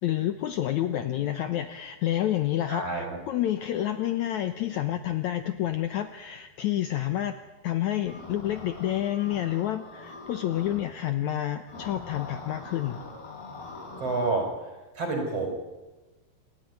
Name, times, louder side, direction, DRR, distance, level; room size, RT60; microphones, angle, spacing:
voice 1, 0.0-7.3 7.6-13.0, left 12 dB, 85° left, 9 dB, 1.6 m, -29 dB
voice 2, 2.7-3.2 14.0-14.5 15.0-15.5, right 3 dB, 40° right, 3 dB, 5.7 m, -28 dB
sound 1, 8.1-10.8 11.7-14.3, left 3 dB, 70° left, 5.8 m, -43 dB
28.0 x 13.5 x 9.3 m, 1.1 s
omnidirectional pair, 4.5 m